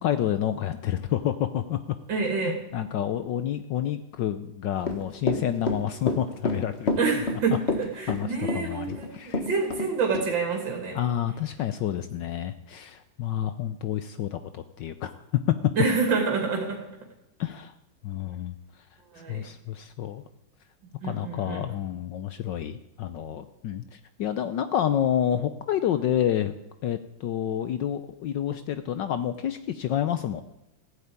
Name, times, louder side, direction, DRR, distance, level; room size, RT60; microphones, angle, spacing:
voice 1, 0.0-1.8 2.4-6.9 8.1-9.5 10.9-15.1 17.4-17.7 18.0-18.5 19.3-20.2 21.0-26.5 26.8-30.4, left 10 dB, 70° left, 10 dB, 1.4 m, -29 dB
voice 2, 2.1-2.6 7.0-11.0 15.8-16.8 19.1-19.5 21.0-21.6, right 4 dB, 70° right, 1 dB, 3.5 m, -27 dB
Run / Walk footsteps, 4.8-9.9 10.1-10.3, left 2 dB, 35° left, 1.8 m, -28 dB
15.5 x 8.7 x 9.6 m, 0.93 s
omnidirectional pair, 2.1 m